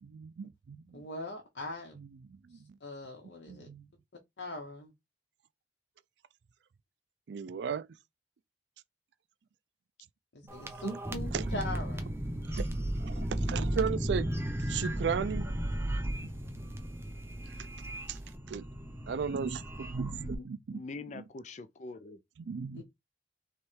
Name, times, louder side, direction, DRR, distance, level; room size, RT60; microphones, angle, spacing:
voice 1, 0.0-1.1 1.9-2.8 3.5-3.9 7.3-7.9 10.6-11.0 11.3-11.7 12.5-14.3 14.6-15.5 17.5-17.7 18.1-18.2 18.5-18.7 19.1-20.8 21.1-21.2 22.4-22.8, right 6 dB, 80° right, 0.4 m, -36 dB
voice 2, 0.9-2.0 2.8-3.7 4.4-4.9 10.3-12.0, left 2 dB, 80° left, 1.0 m, -41 dB
sound 1, 10.5-20.3, right 1 dB, 15° right, 0.7 m, -35 dB
voice 3, 20.7-22.2, left 3 dB, 40° left, 0.4 m, -44 dB
3.4 x 3.1 x 4.4 m
head